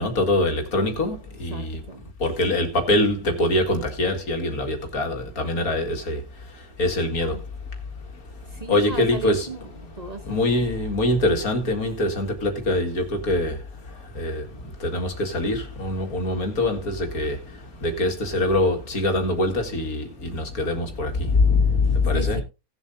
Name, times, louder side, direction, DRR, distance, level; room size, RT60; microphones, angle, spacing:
voice 1, 0.0-1.8 2.2-6.2 6.8-7.4 8.7-9.5 10.3-13.6 14.2-14.4 14.8-17.4 17.8-22.4, left 2 dB, 85° left, 2.5 m, -23 dB
voice 2, 1.5-2.0 7.2-7.4 8.5-10.5 22.1-22.4, right 3 dB, 30° right, 0.9 m, -35 dB
18.0 x 7.3 x 2.7 m
omnidirectional pair, 1.5 m